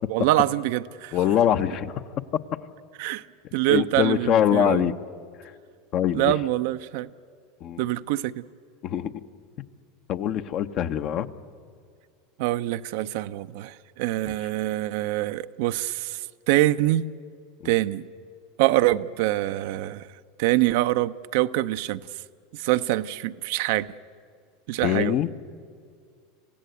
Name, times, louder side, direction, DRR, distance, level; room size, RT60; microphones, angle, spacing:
voice 1, 0.1-1.2 3.0-3.2 3.5-4.9 6.1-7.1 7.8-8.5 12.4-17.0 17.6-18.0 18.6-20.1 20.4-22.0 22.5-23.9 24.7-25.1, right 15 dB, 65° right, 0.6 m, -25 dB
voice 2, 1.1-1.9 3.7-4.9 5.9-6.3 7.6-7.8 8.8-9.1 10.1-11.3 17.6-17.7 24.8-25.3, left 10 dB, 50° left, 0.9 m, -23 dB
27.0 x 16.0 x 8.1 m
hypercardioid pair, 90°, 0 cm